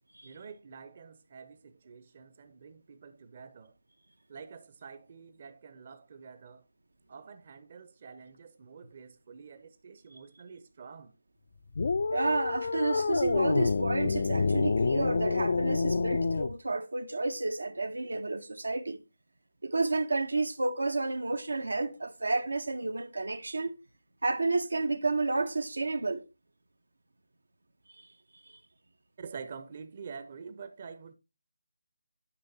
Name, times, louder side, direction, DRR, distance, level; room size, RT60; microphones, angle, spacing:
voice 1, 0.2-3.8 4.3-6.6 7.1-11.1 29.2-31.1, right 5 dB, 35° right, 0.6 m, -47 dB
sound 1, 11.7-16.5, left 4 dB, 50° left, 0.3 m, -28 dB
voice 2, 12.1-19.0 19.6-23.8 24.2-26.2, right 3 dB, 75° right, 0.7 m, -31 dB
9.9 x 5.7 x 2.7 m
figure-of-eight pair, 160°, 0 cm